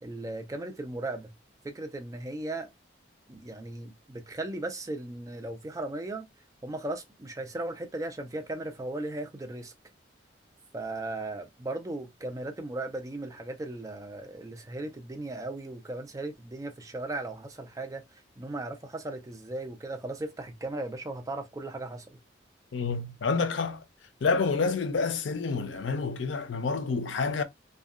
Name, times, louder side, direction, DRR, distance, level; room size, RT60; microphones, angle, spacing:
voice 1, 0.0-1.3 1.6-2.7 3.3-6.2 6.6-9.7 10.7-18.0 18.4-22.2, right 2 dB, 20° right, 0.4 m, -37 dB
voice 2, 22.7-23.8 24.2-27.4, left 4 dB, 85° left, 0.5 m, -28 dB
2.6 x 2.2 x 2.3 m
head